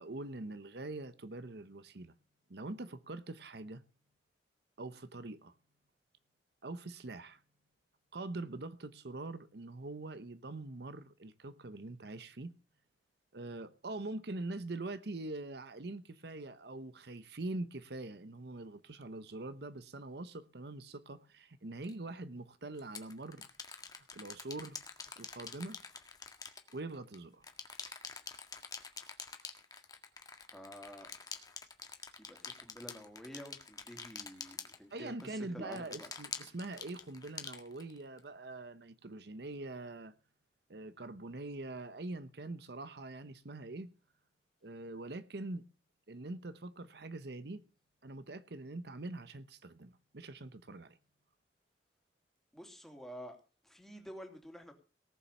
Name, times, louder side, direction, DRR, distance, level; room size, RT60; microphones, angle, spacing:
voice 1, 0.0-2.1 2.5-3.8 4.8-5.5 6.6-7.4 8.1-12.5 13.3-23.5 24.1-24.8 25.2-25.8 26.7-27.4 34.9-40.1 40.7-43.9 44.6-45.6 46.1-47.6 48.0-51.0, right 2 dB, 65° right, 0.9 m, -44 dB
sound 1, 21.8-21.9 22.8-27.2 27.4-35.3 35.7-38.2, left 5 dB, 20° left, 1.7 m, -46 dB
voice 2, 30.5-31.1 32.2-36.1 52.5-53.4 53.6-54.7, equal, ahead, 2.8 m, -49 dB
18.5 x 7.3 x 6.8 m
head